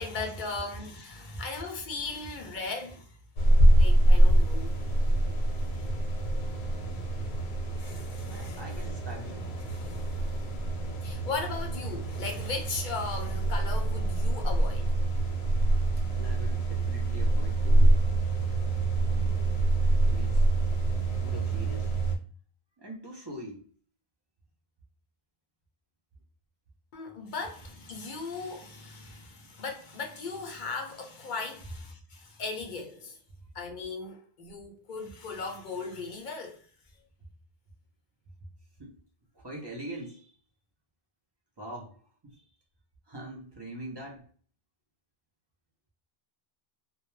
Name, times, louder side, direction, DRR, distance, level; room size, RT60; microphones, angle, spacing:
voice 1, 0.0-3.2 3.7-4.7 7.8-8.6 9.7-10.4 11.0-14.9 26.9-33.2 33.5-36.7, left 4 dB, 55° left, 0.6 m, -38 dB
sound 1, 3.4-22.2, right 1 dB, 85° left, 0.9 m, -25 dB
voice 2, 8.3-9.5 16.1-18.1 19.1-19.5 19.9-20.5 21.2-22.0 22.8-23.7 38.8-39.0 39.3-40.4 41.6-42.4 43.1-44.3, right 1 dB, 30° right, 0.5 m, -43 dB
2.2 x 2.1 x 3.0 m
omnidirectional pair, 1.1 m